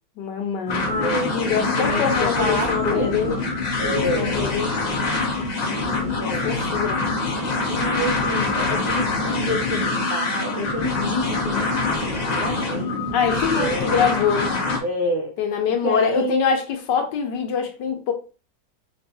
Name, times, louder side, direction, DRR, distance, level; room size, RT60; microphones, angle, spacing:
voice 1, 0.2-3.4 3.8-4.7 5.8-7.1 13.1-14.6 15.4-18.1, left 6 dB, 70° left, 1.3 m, -24 dB
sound 1, 0.7-14.8, left 3 dB, 55° left, 0.4 m, -24 dB
voice 2, 1.0-3.4 3.8-4.4 5.3-6.5 7.7-14.1 14.8-15.3 15.7-16.4, equal, 90° right, 0.4 m, -29 dB
5.3 x 2.5 x 2.7 m
omnidirectional pair, 2.0 m